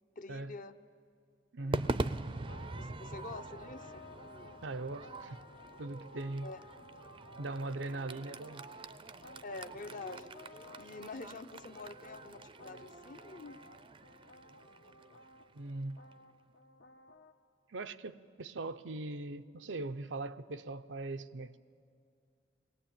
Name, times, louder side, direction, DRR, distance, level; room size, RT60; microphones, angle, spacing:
voice 1, 0.2-0.8 1.6-1.9 2.8-4.1 6.4-6.7 9.4-10.3 10.8-13.6, left 3 dB, 45° left, 0.8 m, -46 dB
voice 2, 1.5-1.9 4.6-5.5 5.8-6.5 7.4-8.7 15.5-16.2 17.7-21.6, right 2 dB, 90° right, 0.7 m, -40 dB
Crowd / Fireworks, 1.7-16.1, right 2 dB, 30° right, 0.5 m, -43 dB
sound 1, 2.3-17.3, left 2 dB, 75° left, 1.1 m, -55 dB
22.5 x 17.5 x 8.8 m
head